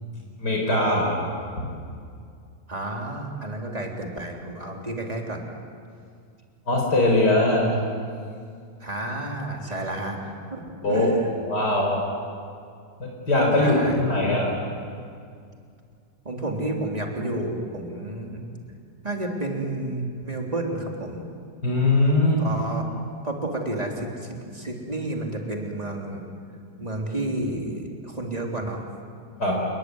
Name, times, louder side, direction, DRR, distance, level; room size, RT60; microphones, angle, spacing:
voice 1, 0.4-1.2 1.6-1.7 6.7-7.8 10.8-11.1 11.5-12.0 13.0-14.5 21.6-22.4 29.4-29.6, left 2 dB, 70° left, -1 dB, 5.4 m, -21 dB
voice 2, 2.7-5.4 8.8-11.4 13.6-14.4 16.2-18.4 19.0-21.2 22.4-22.9 23.2-26.2 26.8-28.9, right 1 dB, 20° right, 0 dB, 3.7 m, -31 dB
29.0 x 21.0 x 9.7 m, 2.3 s
omnidirectional pair, 1.8 m